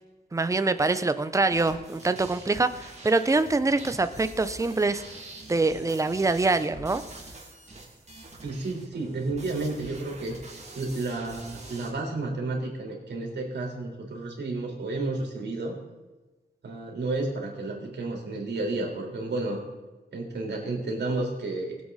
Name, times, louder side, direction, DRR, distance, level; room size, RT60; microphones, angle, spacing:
voice 1, 0.3-5.0 5.5-7.0, right 3 dB, 20° right, 11 dB, 0.6 m, -24 dB
sound 1, 1.5-11.9, right 2 dB, 40° right, 2.4 m, -45 dB
voice 2, 8.4-10.4 10.7-15.8 16.6-19.6 20.1-21.7, right 2 dB, 90° right, -1 dB, 3.6 m, -31 dB
20.5 x 8.0 x 4.1 m, 1.1 s
wide cardioid pair, 165°, 17 cm